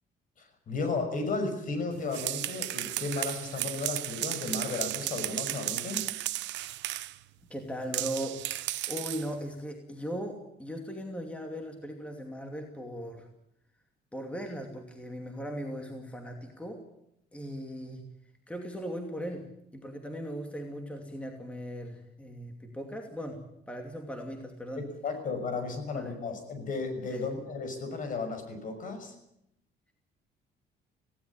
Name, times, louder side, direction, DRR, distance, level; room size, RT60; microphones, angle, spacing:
voice 1, 0.4-6.0 24.8-29.1, left 3 dB, 45° left, 8 dB, 6.0 m, -34 dB
sound 1, 1.9-7.2 7.9-9.3, right 16 dB, 80° right, 0.9 m, -34 dB
voice 2, 7.5-13.3 14.1-16.8 17.3-18.0 18.5-19.4 19.7-24.8 25.9-26.1 27.1-27.3, equal, 5° left, 3 dB, 2.6 m, -38 dB
18.0 x 17.0 x 10.0 m, 0.80 s
cardioid pair, 135°, 18 cm